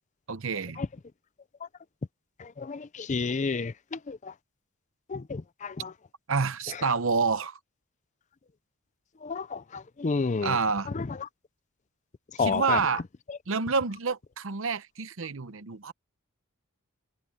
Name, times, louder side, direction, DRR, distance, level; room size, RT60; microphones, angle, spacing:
voice 1, 0.3-0.8 6.3-7.6 10.4-10.9 12.4-13.0 13.5-15.9, right 5 dB, 60° right, 0.8 m, -28 dB
voice 2, 2.4-4.3 5.1-5.9 9.2-10.6 10.9-11.2 12.4-12.8, left 4 dB, 30° left, 0.4 m, -31 dB
head